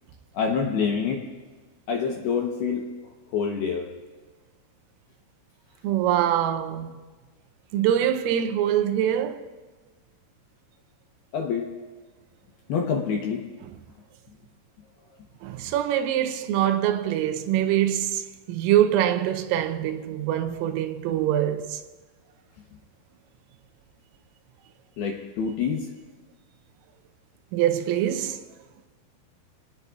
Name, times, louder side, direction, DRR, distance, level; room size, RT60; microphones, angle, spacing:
voice 1, 0.3-1.2 1.9-2.8 3.3-3.9 11.3-11.7 12.7-13.4 25.0-25.9, left 6 dB, 75° left, 2.4 m, -26 dB
voice 2, 5.8-7.0 7.7-9.5 15.4-21.8 27.5-28.4, right 11 dB, 85° right, 3.4 m, -24 dB
28.0 x 18.5 x 2.4 m
omnidirectional pair, 6.0 m